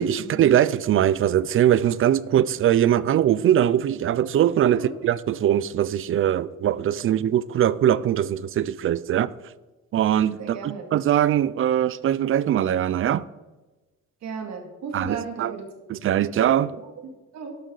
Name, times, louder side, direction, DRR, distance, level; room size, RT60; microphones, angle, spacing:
voice 1, 0.0-9.3 9.9-13.2 14.9-15.5 15.9-16.8, right 11 dB, 45° right, 0.4 m, -21 dB
voice 2, 10.4-10.9 14.2-15.9 16.6-17.6, right 5 dB, 60° right, 2.3 m, -35 dB
11.5 x 11.0 x 4.0 m
cardioid pair, 180°, 31 cm